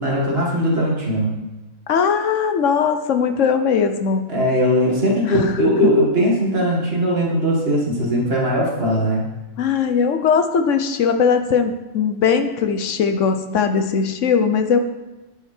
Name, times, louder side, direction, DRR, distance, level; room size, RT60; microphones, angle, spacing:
voice 1, 0.0-1.3 4.3-9.2, equal, 40° right, -2 dB, 2.2 m, -19 dB
voice 2, 1.9-4.3 5.2-5.7 9.6-14.8, left 6 dB, 60° left, 8 dB, 1.0 m, -19 dB
10.0 x 7.9 x 4.4 m, 1.1 s
omnidirectional pair, 1.6 m